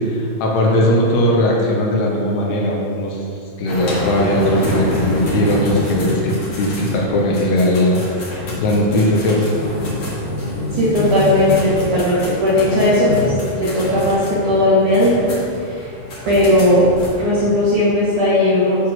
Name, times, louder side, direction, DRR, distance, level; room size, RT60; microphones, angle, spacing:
voice 1, 0.0-3.2 3.6-8.0 8.6-9.5, left 1 dB, 70° left, -2 dB, 2.8 m, -18 dB
sound 1, 3.7-17.1, left 1 dB, 50° left, 1.7 m, -26 dB
voice 2, 10.8-15.3 15.6-15.9 16.3-16.9 17.2-18.9, left 1 dB, 55° right, -10 dB, 2.5 m, -16 dB
9.5 x 4.4 x 6.1 m, 2.5 s
omnidirectional pair, 5.3 m